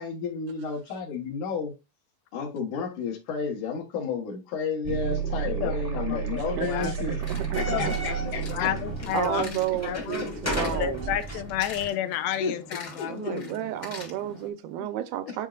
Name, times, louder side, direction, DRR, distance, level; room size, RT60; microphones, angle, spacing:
voice 1, 0.0-1.7 2.3-7.2 7.5-8.7 10.0-10.6 12.4-12.6 13.0-13.3 15.3-15.4, left 5 dB, 60° left, 2.6 m, -32 dB
sound 1, 4.8-9.9, right 8 dB, 50° right, 0.8 m, -32 dB
voice 2, 5.4-6.9 7.6-9.6 9.8-13.6, left 11 dB, 85° left, 2.5 m, -32 dB
voice 3, 6.6-6.9 7.3-7.9 9.1-11.2 13.1-15.5, right 12 dB, 80° right, 2.5 m, -32 dB
sound 2, 6.7-14.5, left 2 dB, 40° left, 1.7 m, -44 dB
sound 3, 7.3-11.9, right 1 dB, 10° left, 0.7 m, -35 dB
10.0 x 4.5 x 2.4 m
omnidirectional pair, 4.3 m